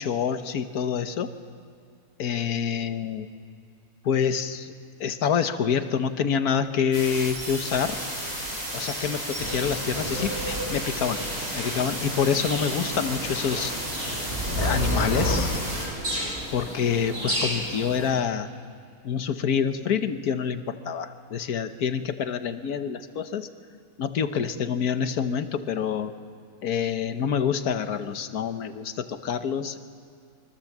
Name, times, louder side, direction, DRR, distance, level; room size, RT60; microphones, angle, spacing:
voice 1, 0.0-1.3 2.2-3.3 4.0-4.7 5.0-8.0 8.7-11.2 11.5-13.7 14.6-15.6 16.5-18.5 19.0-23.5 24.0-26.1 26.6-29.8, left 7 dB, 75° left, 9 dB, 1.6 m, -27 dB
sound 1, 6.9-15.9, right 1 dB, 55° right, 8.4 m, -33 dB
sound 2, 9.4-18.1, equal, 40° right, 8.1 m, -31 dB
24.0 x 22.0 x 7.4 m, 2.4 s
omnidirectional pair, 1.6 m